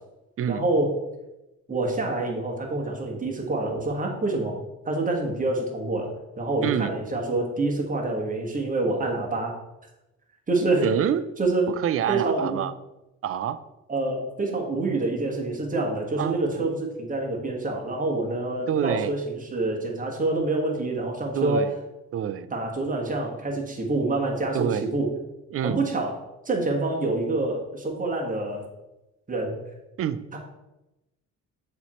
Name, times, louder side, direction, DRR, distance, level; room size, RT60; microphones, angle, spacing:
voice 1, 0.5-1.0 1.7-4.6 4.8-9.6 10.5-10.9 11.4-11.7 12.1-12.6 13.9-21.7 22.5-25.1 25.6-26.1 26.4-28.6 29.3-29.6 30.3-30.4, right 2 dB, 25° right, 0 dB, 1.5 m, -26 dB
voice 2, 6.6-6.9 10.8-11.3 11.7-12.7 13.2-13.6 16.2-16.6 18.7-19.2 21.3-21.7 22.1-22.5 24.5-24.9 25.5-25.9 30.0-30.2, right 9 dB, 50° right, 14 dB, 0.4 m, -27 dB
6.8 x 3.2 x 4.3 m, 0.98 s
cardioid pair, 90°, 30 cm